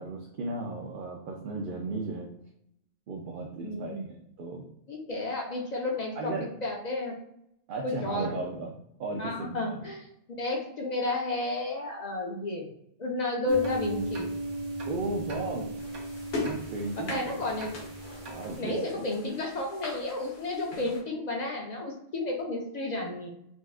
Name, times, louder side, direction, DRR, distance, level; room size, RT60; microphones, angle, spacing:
voice 1, 0.0-2.3 3.1-4.6 6.2-6.5 7.7-8.7 9.0-9.8 14.9-15.7 16.4-17.3 18.2-19.0, right 3 dB, 60° right, -1 dB, 0.5 m, -35 dB
voice 2, 3.6-4.0 4.9-7.1 7.8-8.3 9.2-10.1 10.4-12.7 13.0-14.3 17.1-17.7 18.6-23.3, left 2 dB, 55° left, 0 dB, 0.5 m, -32 dB
sound 1, 13.5-18.6, right 2 dB, 80° right, 1.1 m, -36 dB
sound 2, 15.8-21.0, left 3 dB, 80° left, 1.3 m, -40 dB
4.2 x 2.3 x 2.4 m, 0.76 s
omnidirectional pair, 1.3 m